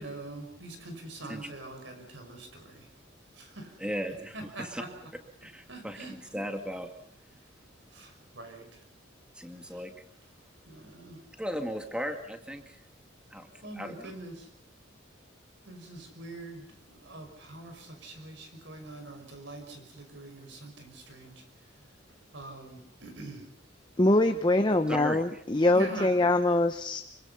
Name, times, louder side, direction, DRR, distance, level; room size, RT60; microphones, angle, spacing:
voice 1, 0.0-2.8 3.4-3.7 4.3-4.9 5.7-6.1 7.9-8.7 10.7-11.2 13.6-14.5 15.7-21.4 22.3-23.4 25.7-26.1, right 2 dB, 65° right, 5.7 m, -44 dB
voice 2, 3.8-4.8 5.4-6.9 9.4-9.9 11.4-12.8 13.3-14.1 24.9-25.4, equal, 5° right, 2.0 m, -37 dB
voice 3, 24.0-27.0, left 2 dB, 25° left, 0.9 m, -24 dB
25.5 x 24.5 x 5.8 m
head